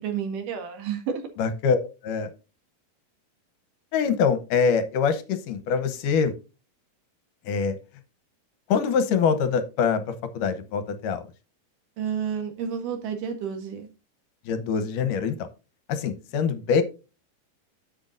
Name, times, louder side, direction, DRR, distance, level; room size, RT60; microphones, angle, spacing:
voice 1, 0.0-1.2 12.0-13.9, right 7 dB, 65° right, 4 dB, 3.3 m, -30 dB
voice 2, 1.4-1.8 2.0-2.3 3.9-6.3 7.4-7.8 8.7-10.0 10.3-11.2 14.5-15.5 15.9-16.8, left 6 dB, 70° left, 10 dB, 2.4 m, -24 dB
10.5 x 7.9 x 2.6 m, 0.30 s
omnidirectional pair, 4.1 m